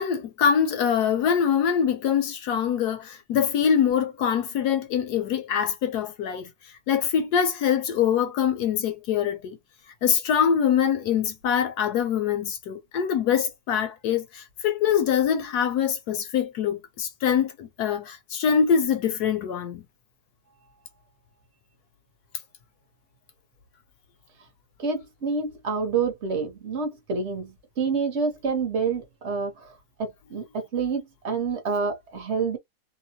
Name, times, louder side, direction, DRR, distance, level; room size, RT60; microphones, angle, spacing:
voice 1, 0.0-6.5 6.9-9.6 10.0-19.8, left 8 dB, 70° left, 1.0 m, -24 dB
voice 2, 24.8-29.7 30.0-32.6, right 5 dB, 50° right, 0.9 m, -28 dB
2.9 x 2.2 x 2.6 m
omnidirectional pair, 1.9 m